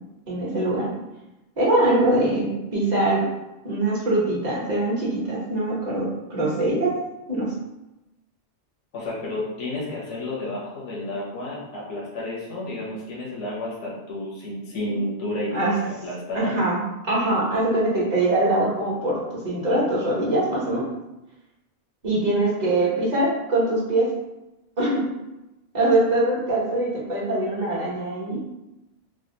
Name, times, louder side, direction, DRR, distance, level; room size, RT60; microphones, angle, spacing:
voice 1, 0.3-0.9 1.6-3.2 3.6-6.9 7.3-7.5 14.8-15.0 15.5-15.7 16.3-16.8 17.1-20.8 22.0-24.1 24.8-25.0 25.7-28.4, right 1 dB, 40° right, -6 dB, 1.1 m, -23 dB
voice 2, 8.9-16.6, left 1 dB, 85° left, -6 dB, 1.2 m, -31 dB
3.4 x 2.3 x 2.7 m, 0.98 s
omnidirectional pair, 1.2 m